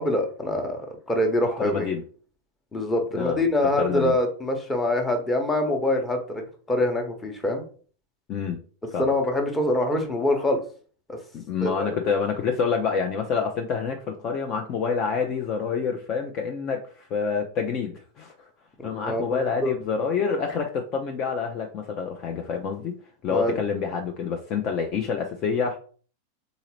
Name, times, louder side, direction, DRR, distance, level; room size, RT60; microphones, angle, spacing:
voice 1, 0.0-1.9 2.7-7.6 9.0-10.6 11.1-11.2 11.6-12.0 18.8-19.3 19.6-19.7 23.3-23.6, left 1 dB, 15° left, 4 dB, 1.0 m, -25 dB
voice 2, 1.6-2.0 3.1-3.4 3.8-4.1 8.3-8.6 8.9-9.1 11.5-18.3 18.8-22.9 23.2-25.8, left 6 dB, 35° left, 3 dB, 0.5 m, -27 dB
3.9 x 3.7 x 3.0 m, 0.42 s
figure-of-eight pair, 90°, 0 cm